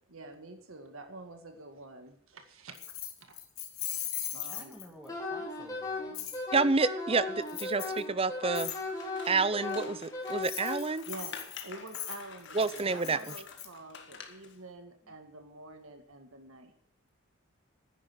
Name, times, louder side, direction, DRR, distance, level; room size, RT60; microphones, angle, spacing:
voice 1, 0.1-2.8 3.3-3.4 4.3-4.8 11.1-16.7, right 2 dB, 75° right, 6 dB, 1.9 m, -47 dB
Keys jangling, 2.7-5.1 6.1-6.4 7.5-8.0 8.5-8.8 10.3-13.7, left 11 dB, 85° left, 2.5 m, -39 dB
voice 2, 4.4-6.3, equal, 5° right, 2 dB, 2.5 m, -52 dB
Wind instrument woodwind instrument, 5.1-10.7, left 3 dB, 15° left, 3.6 m, -36 dB
voice 3, 6.5-8.7 9.3-11.0 12.5-13.2, right 4 dB, 25° right, 15 dB, 0.6 m, -29 dB
Scissors, 8.5-14.6, left 5 dB, 55° left, 1.8 m, -49 dB
10.0 x 10.0 x 9.7 m, 0.66 s
head